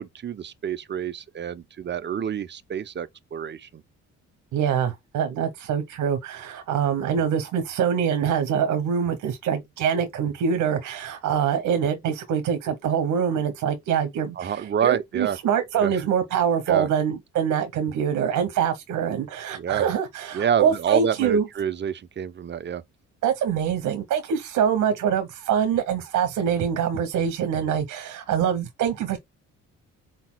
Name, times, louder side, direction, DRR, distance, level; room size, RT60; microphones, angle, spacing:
voice 1, 0.0-3.8 14.4-15.4 15.8-16.0 16.7-16.9 19.5-19.9 20.3-22.8, right 8 dB, 35° right, 0.6 m, -28 dB
voice 2, 4.5-21.4 23.2-29.2, right 8 dB, 80° right, 1.0 m, -24 dB
4.4 x 4.1 x 2.2 m
cardioid pair, 90°, 30 cm